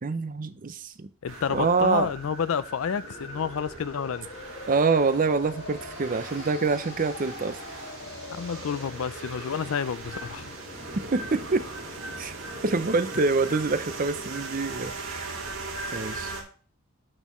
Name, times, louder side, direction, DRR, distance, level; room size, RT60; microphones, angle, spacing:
voice 1, 0.0-1.1 1.5-2.1 4.7-7.6 11.1-11.7 12.2-12.3 12.6-15.4 15.9-16.3, right 4 dB, 40° right, 0.5 m, -26 dB
voice 2, 1.2-4.3 8.3-10.5, left 7 dB, 70° left, 0.4 m, -30 dB
sound 1, 1.3-16.4, right 3 dB, 65° right, 1.9 m, -39 dB
sound 2, 2.9-14.1, left 2 dB, 55° left, 1.8 m, -43 dB
8.8 x 6.4 x 3.0 m
head